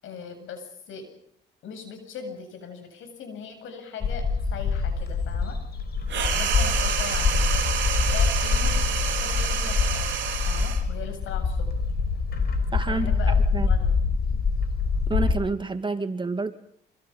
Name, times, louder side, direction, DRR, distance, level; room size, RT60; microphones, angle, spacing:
voice 1, 0.0-1.1 1.6-4.3 4.5-5.6 6.1-7.6 8.1-10.2 10.5-11.7 12.9-13.3 13.6-13.9, left 6 dB, 80° left, 7 dB, 7.8 m, -39 dB
Bird, 4.0-15.3, left 5 dB, 55° left, 4.9 m, -25 dB
sound 1, 6.1-10.9, right 9 dB, 65° right, 4.2 m, -28 dB
voice 2, 12.7-13.1 13.5-13.7 15.1-16.5, right 3 dB, 25° right, 8 dB, 2.4 m, -28 dB
26.5 x 26.0 x 5.6 m, 0.66 s
cardioid pair, 90°, 20 cm